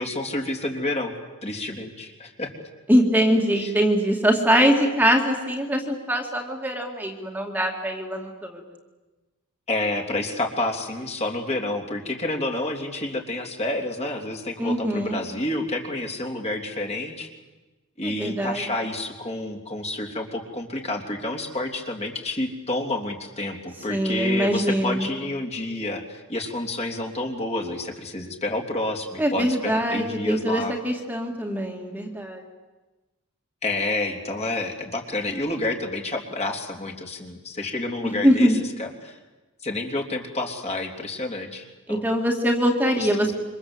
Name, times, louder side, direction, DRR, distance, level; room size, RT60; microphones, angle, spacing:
voice 1, 0.0-2.7 3.6-3.7 9.7-17.3 18.0-30.7 33.6-38.5 38.8-39.2 39.6-42.1 42.9-43.3, left 2 dB, 30° left, 2 dB, 3.4 m, -29 dB
voice 2, 2.9-8.6 14.6-15.2 18.0-18.6 23.9-25.1 29.2-32.4 38.0-38.6 41.9-43.3, equal, 10° right, 1 dB, 2.4 m, -23 dB
27.5 x 25.0 x 8.1 m, 1.2 s
head